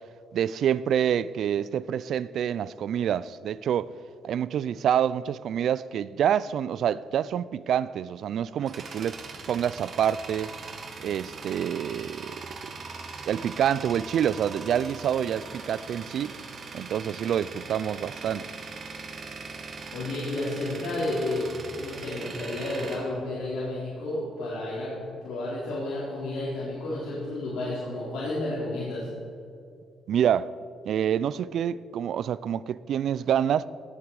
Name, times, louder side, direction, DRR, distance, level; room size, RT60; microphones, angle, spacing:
voice 1, 0.3-3.9 4.2-9.2 9.5-10.5 11.0-12.4 13.2-16.4 16.7-18.5 30.1-30.5 30.9-33.7, right 9 dB, 70° right, 0.3 m, -27 dB
Tools, 8.1-24.0, right 4 dB, 50° right, 1.6 m, -41 dB
voice 2, 19.9-21.5 21.7-29.1, left 2 dB, 80° left, 3.9 m, -31 dB
18.0 x 8.5 x 4.8 m
cardioid pair, 90°, 0 cm